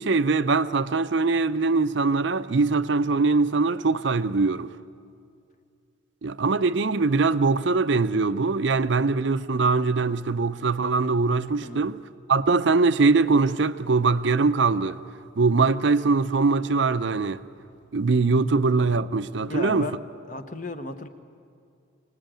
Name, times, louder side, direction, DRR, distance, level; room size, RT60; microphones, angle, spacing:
voice 1, 0.0-4.7 6.2-12.0 12.3-15.0 15.4-17.4 17.9-19.9, right 4 dB, 65° right, 0.6 m, -22 dB
voice 2, 19.5-20.0 20.3-21.1, left 3 dB, 40° left, 1.1 m, -35 dB
24.5 x 19.0 x 9.0 m
head